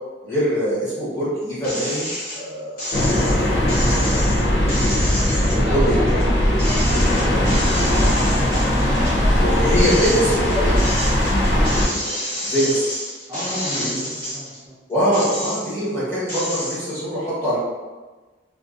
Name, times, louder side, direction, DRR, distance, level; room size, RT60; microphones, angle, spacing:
voice 1, 0.2-4.0 5.5-6.3 9.4-10.8 12.4-12.9 13.8-14.0 14.9-17.6, equal, 15° left, -10 dB, 1.0 m, -23 dB
sound 1, 1.6-2.4 2.8-6.2 6.6-9.2 9.6-14.6 15.0-15.9 16.3-16.8, equal, 55° left, 0.8 m, -29 dB
sound 2, 2.9-11.9, left 1 dB, 85° left, 0.5 m, -19 dB
voice 2, 5.6-9.6 10.2-10.8 11.8-12.0 13.3-14.8, equal, 15° right, -10 dB, 0.7 m, -31 dB
2.5 x 2.3 x 2.4 m, 1.3 s
head